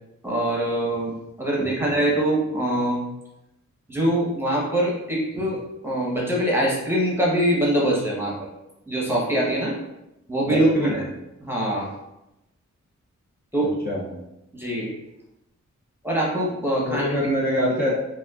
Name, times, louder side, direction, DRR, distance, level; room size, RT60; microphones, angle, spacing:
voice 1, 0.2-1.1 1.4-3.0 3.9-8.5 8.9-9.8 10.3-11.1 11.4-11.9 13.5-13.7 14.5-14.9 16.0-17.0, right 1 dB, 10° right, -4 dB, 0.9 m, -23 dB
voice 2, 1.6-2.0 10.5-11.0 13.8-14.1 16.9-18.0, equal, 30° left, -5 dB, 0.6 m, -25 dB
5.1 x 2.3 x 2.4 m, 0.89 s
wide cardioid pair, 120°, 30 cm